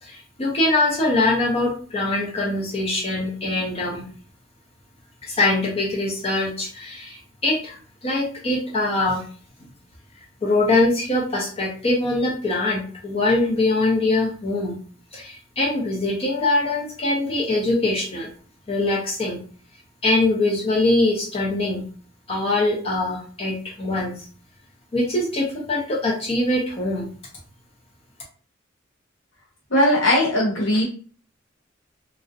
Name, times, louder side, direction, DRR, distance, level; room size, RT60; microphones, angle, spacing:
voice 1, 0.0-4.0 5.2-9.3 10.4-14.8 15.1-18.3 18.7-19.4 20.0-21.8 22.3-24.3 24.9-27.1, left 2 dB, 30° left, -2 dB, 0.5 m, -23 dB
voice 2, 29.7-30.8, left 1 dB, 80° left, -2 dB, 1.0 m, -19 dB
2.4 x 2.0 x 2.5 m, 0.43 s
head